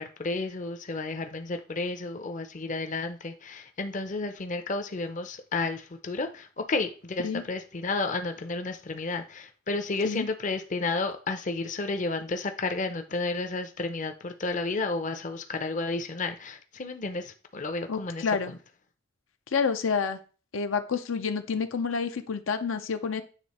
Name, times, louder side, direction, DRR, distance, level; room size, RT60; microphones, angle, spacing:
voice 1, 0.0-18.6, left 3 dB, 40° left, 0.6 m, -32 dB
voice 2, 17.9-18.5 19.5-20.2 20.5-23.2, left 5 dB, 80° left, 0.6 m, -28 dB
8.2 x 3.3 x 4.2 m
head